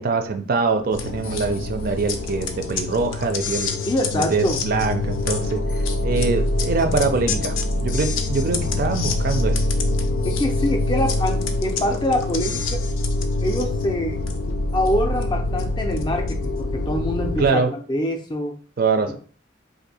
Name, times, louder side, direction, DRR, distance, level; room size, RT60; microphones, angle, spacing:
voice 1, 0.0-3.8 4.1-5.6 6.0-9.6 17.4-17.7 18.8-19.2, right 4 dB, 45° right, 7 dB, 0.4 m, -23 dB
sound 1, 0.9-17.5, left 2 dB, 90° left, 0.5 m, -25 dB
voice 2, 3.8-4.6 10.2-12.8 13.4-14.2 14.5-18.6, left 1 dB, 25° left, 4 dB, 0.4 m, -25 dB
2.6 x 2.5 x 4.1 m, 0.42 s
head